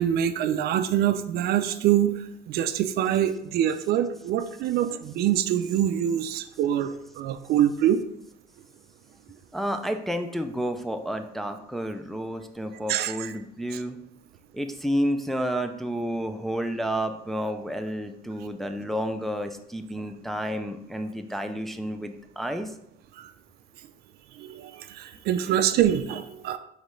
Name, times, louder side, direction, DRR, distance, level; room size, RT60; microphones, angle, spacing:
voice 1, 0.0-2.2 2.5-8.0 12.9-13.1 23.2-23.3 24.4-26.6, right 10 dB, 70° right, 10 dB, 0.4 m, -25 dB
voice 2, 9.5-14.0 14.5-22.7 25.4-25.6, equal, ahead, 6 dB, 0.3 m, -30 dB
5.1 x 3.2 x 3.1 m, 0.74 s
cardioid pair, 110°, 17 cm